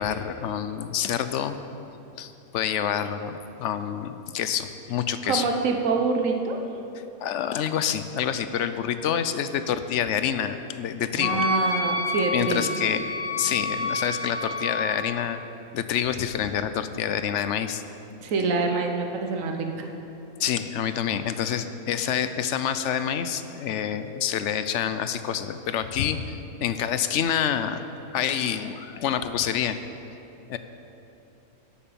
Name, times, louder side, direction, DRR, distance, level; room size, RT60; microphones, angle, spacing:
voice 1, 0.0-1.6 2.2-5.5 7.2-11.5 12.3-15.4 15.7-17.8 20.4-27.8 28.1-29.8 30.5-30.6, left 9 dB, 65° left, 11 dB, 0.8 m, -27 dB
voice 2, 5.2-6.6 11.2-12.7 18.2-19.9, right 4 dB, 65° right, 3 dB, 1.4 m, -26 dB
Wind instrument woodwind instrument, 11.2-14.8, left 2 dB, 50° left, 2.2 m, -28 dB
11.5 x 8.7 x 6.9 m, 2.9 s
omnidirectional pair, 1.5 m